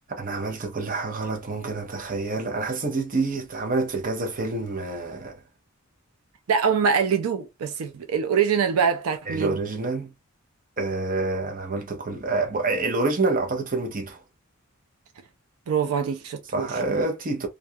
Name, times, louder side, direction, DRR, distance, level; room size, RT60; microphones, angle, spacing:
voice 1, 0.1-5.4 9.3-10.1 10.8-14.2 16.5-17.5, right 3 dB, 40° right, 0.7 m, -27 dB
voice 2, 6.5-9.6 15.7-16.7, right 6 dB, 80° right, 0.4 m, -24 dB
2.4 x 2.3 x 2.5 m
head